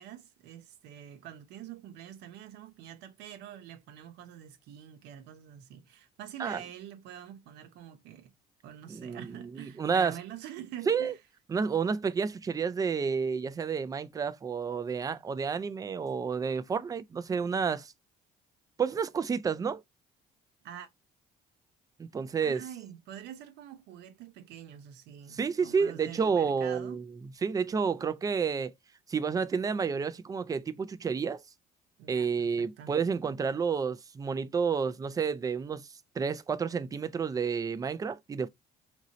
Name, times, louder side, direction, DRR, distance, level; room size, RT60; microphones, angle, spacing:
voice 1, 0.0-8.3 8.6-11.2 20.6-20.9 22.4-27.0 32.0-32.9, right 10 dB, 85° right, 0.7 m, -46 dB
voice 2, 8.9-10.1 10.9-11.1 11.5-17.9 18.8-19.8 22.0-22.6 25.3-27.0 27.4-28.7 29.1-31.4 32.1-35.9 36.2-38.5, right 6 dB, 20° right, 0.3 m, -30 dB
3.0 x 2.7 x 3.8 m
cardioid pair, 110°, 17 cm